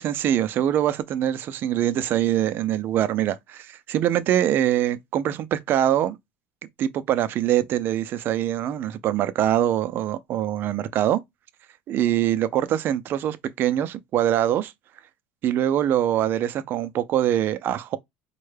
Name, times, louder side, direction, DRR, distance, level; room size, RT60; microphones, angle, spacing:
voice 1, 0.0-6.2 6.8-11.2 11.9-14.7 15.4-18.0, right 11 dB, 40° right, 0.4 m, -23 dB
4.5 x 2.1 x 3.2 m
cardioid pair, 150°, 5 cm